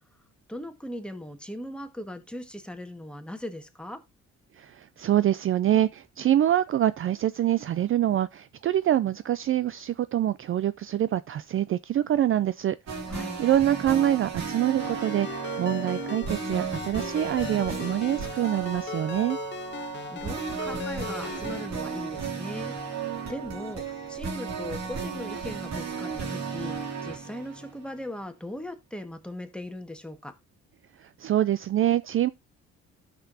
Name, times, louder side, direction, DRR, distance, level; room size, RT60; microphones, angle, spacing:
voice 1, 0.5-4.0 13.1-13.4 19.8-22.7 23.3-26.8 27.0-30.3, left 1 dB, 5° left, 1.6 m, -39 dB
voice 2, 4.6-12.8 13.4-19.4 31.0-32.3, right 11 dB, 45° right, 0.4 m, -25 dB
sound 1, 12.9-28.1, right 6 dB, 65° right, 2.6 m, -34 dB
Ringtone, 14.8-21.7, left 10 dB, 40° left, 0.5 m, -38 dB
13.0 x 6.0 x 2.7 m
cardioid pair, 90°, 30 cm